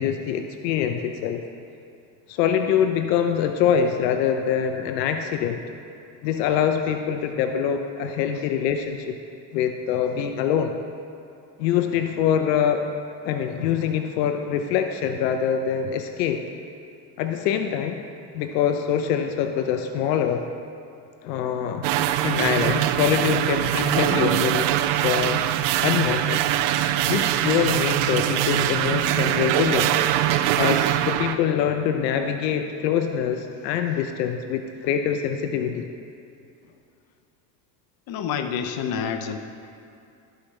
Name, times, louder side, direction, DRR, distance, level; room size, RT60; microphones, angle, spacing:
voice 1, 0.0-1.4 2.3-5.6 6.2-9.2 9.5-10.7 11.6-12.9 13.2-16.4 17.2-18.0 18.3-20.5 21.2-25.4 25.8-26.5 27.1-29.9 30.5-35.9, left 8 dB, 80° left, 6 dB, 0.7 m, -24 dB
sound 1, 21.8-31.4, right 12 dB, 60° right, 0.5 m, -22 dB
voice 2, 38.1-39.4, left 7 dB, 45° left, 7 dB, 0.8 m, -28 dB
14.0 x 5.1 x 3.2 m, 2.5 s
hypercardioid pair, 85°, 49 cm